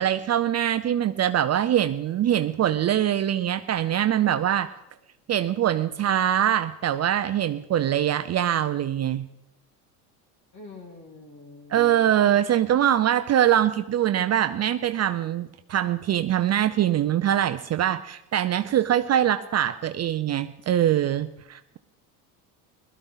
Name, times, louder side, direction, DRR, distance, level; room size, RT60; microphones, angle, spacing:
voice 1, 0.0-4.7 5.3-9.3 11.7-21.8, right 11 dB, 35° right, 11 dB, 0.6 m, -23 dB
voice 2, 10.5-12.2, left 3 dB, 40° left, 3 dB, 3.3 m, -46 dB
17.5 x 13.5 x 4.0 m, 0.86 s
hypercardioid pair, 80°, 46 cm